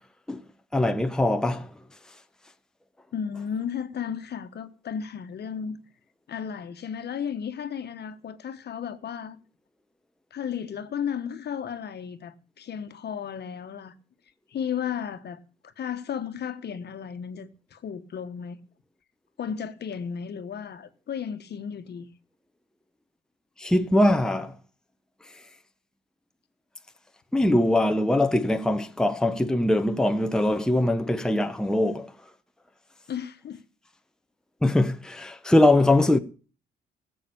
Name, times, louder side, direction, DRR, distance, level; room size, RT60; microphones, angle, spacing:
voice 1, 0.7-1.7 23.6-24.5 27.3-32.1 34.6-36.2, left 1 dB, 5° left, 0.9 m, -22 dB
voice 2, 3.1-5.8 6.3-9.4 10.3-13.9 14.5-15.4 15.8-18.6 19.4-22.1 33.1-33.6, left 7 dB, 55° left, 1.3 m, -34 dB
15.0 x 7.8 x 6.8 m
cardioid pair, 90°, 20 cm